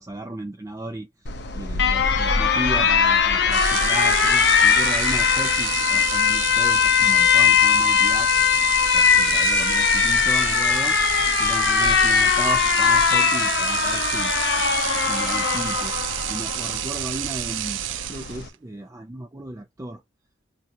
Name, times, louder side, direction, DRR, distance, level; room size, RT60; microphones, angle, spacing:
voice 1, 0.0-8.4 8.9-11.0 11.4-17.8 18.1-20.0, right 1 dB, 15° right, 0.4 m, -34 dB
Alarm, 1.3-18.5, left 7 dB, 65° left, 0.6 m, -20 dB
sound 1, 3.5-18.5, right 15 dB, 85° right, 0.3 m, -29 dB
2.8 x 2.5 x 4.2 m
head